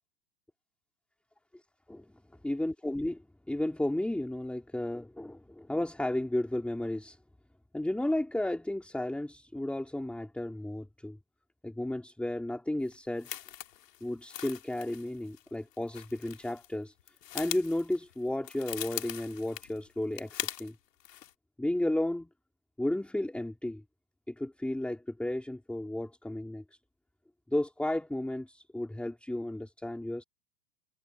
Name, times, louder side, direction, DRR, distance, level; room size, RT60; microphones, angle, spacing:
voice 1, 2.4-3.2 3.5-7.2 7.7-11.2 11.6-13.3 14.0-16.9 17.3-20.7 21.6-22.3 22.8-23.8 24.3-26.6 27.5-30.2, left 1 dB, ahead, 3.1 m, -33 dB
sound 1, 12.9-16.7 17.0-20.7 21.0-21.3, left 12 dB, 80° left, 3.7 m, -41 dB
supercardioid pair, 140°, 48 cm